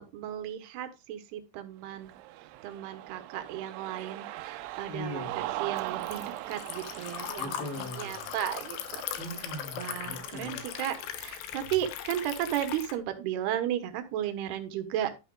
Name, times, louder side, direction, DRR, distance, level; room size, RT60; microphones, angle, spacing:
voice 1, 0.0-2.1 2.6-5.3 5.6-7.6 8.0-9.0 9.8-10.9 11.2-15.1, right 11 dB, 70° right, 8 dB, 2.8 m, -34 dB
Cheering, 1.9-11.2, right 16 dB, 90° right, 3.1 m, -41 dB
Liquid, 4.7-13.0, left 10 dB, 75° left, 3.1 m, -39 dB
voice 2, 4.9-5.5 7.4-8.3 9.2-10.6 11.6-11.7, left 1 dB, 35° left, -4 dB, 3.2 m, -40 dB
11.5 x 8.9 x 2.4 m, 0.27 s
omnidirectional pair, 5.3 m